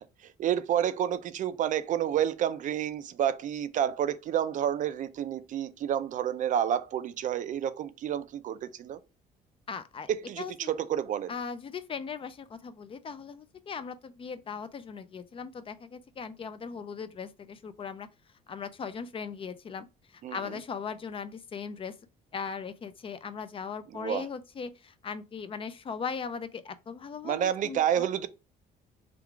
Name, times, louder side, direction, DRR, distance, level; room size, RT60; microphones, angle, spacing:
voice 1, 0.0-9.0 10.1-11.3 20.2-20.4 23.9-24.2 27.2-28.3, right 10 dB, 50° right, 0.4 m, -29 dB
voice 2, 9.7-10.1 10.4-10.7 11.3-18.1 18.5-19.9 20.1-21.9 22.3-28.1, left 6 dB, 30° left, 0.4 m, -39 dB
3.7 x 2.4 x 4.5 m
cardioid pair, 110°, 17 cm